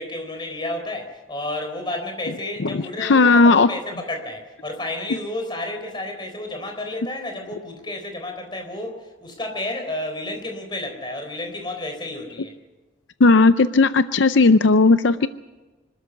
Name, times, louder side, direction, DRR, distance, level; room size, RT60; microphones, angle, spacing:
voice 1, 0.0-12.5, left 1 dB, 25° left, 4 dB, 3.9 m, -31 dB
voice 2, 2.7-3.7 13.2-15.3, left 3 dB, 70° left, 12 dB, 0.6 m, -15 dB
26.0 x 13.0 x 8.1 m, 1.2 s
head